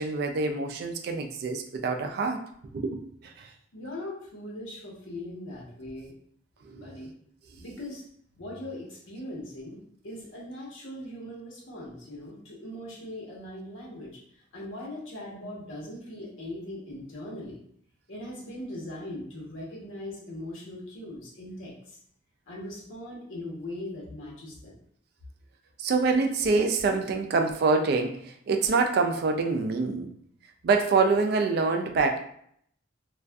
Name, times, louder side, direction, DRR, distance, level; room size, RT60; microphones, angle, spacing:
voice 1, 0.0-2.4 2.7-3.5 6.6-6.9 25.8-30.1 30.6-32.2, right 4 dB, 55° right, 5 dB, 0.3 m, -26 dB
voice 2, 3.7-6.1 6.6-7.1 7.6-8.0 8.4-14.2 14.5-17.6 18.1-22.0 22.5-24.8, left 1 dB, 85° left, -4 dB, 0.9 m, -40 dB
2.5 x 2.3 x 2.2 m, 0.66 s
head